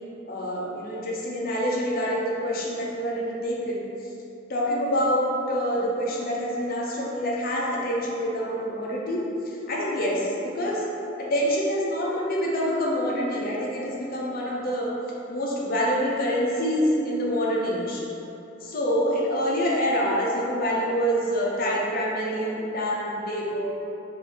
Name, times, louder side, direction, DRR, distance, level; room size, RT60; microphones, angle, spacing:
voice 1, 0.3-3.8 4.5-9.2 9.7-10.8 11.2-14.9 15.3-18.0 18.6-23.7, equal, 50° left, -4 dB, 0.6 m, -26 dB
3.8 x 2.5 x 3.6 m, 3.0 s
head